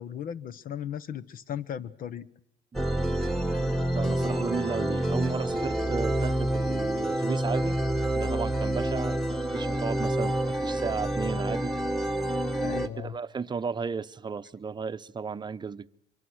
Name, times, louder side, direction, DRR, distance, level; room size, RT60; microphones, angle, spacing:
voice 1, 0.0-2.3 12.6-13.2, left 9 dB, 55° left, 1.2 m, -36 dB
sound 1, 2.7-12.9, right 1 dB, ahead, 1.6 m, -28 dB
voice 2, 3.9-7.8 8.1-11.7 12.6-15.9, right 5 dB, 25° right, 0.8 m, -34 dB
24.0 x 23.0 x 6.3 m
cardioid pair, 110°, 17 cm